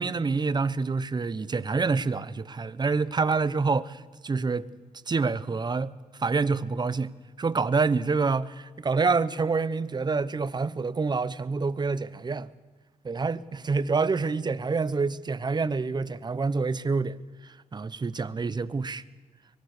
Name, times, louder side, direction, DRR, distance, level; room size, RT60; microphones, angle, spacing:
voice 1, 0.0-4.7 5.1-5.9 6.2-12.5 13.0-17.2 17.7-19.0, right 4 dB, 30° right, 16 dB, 0.9 m, -27 dB
24.5 x 20.0 x 6.7 m, 1.3 s
cardioid pair, 85°, 14 cm